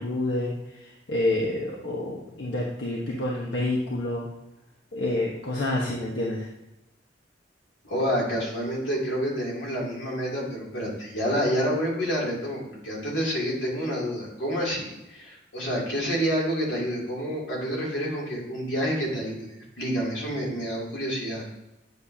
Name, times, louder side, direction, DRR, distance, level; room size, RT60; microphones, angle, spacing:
voice 1, 0.0-4.3 4.9-6.5, left 1 dB, 70° left, -3 dB, 1.2 m, -28 dB
voice 2, 7.8-21.4, equal, 85° left, -4 dB, 2.9 m, -28 dB
9.5 x 6.8 x 2.8 m, 0.96 s
head